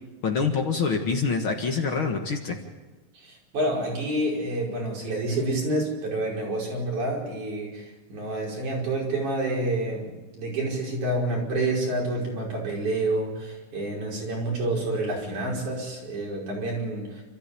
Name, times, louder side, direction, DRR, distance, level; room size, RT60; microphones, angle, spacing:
voice 1, 0.2-2.6, left 5 dB, 50° left, 3 dB, 2.2 m, -26 dB
voice 2, 3.2-17.2, right 2 dB, 75° right, -2 dB, 6.8 m, -28 dB
29.0 x 14.0 x 8.5 m, 1.2 s
omnidirectional pair, 3.5 m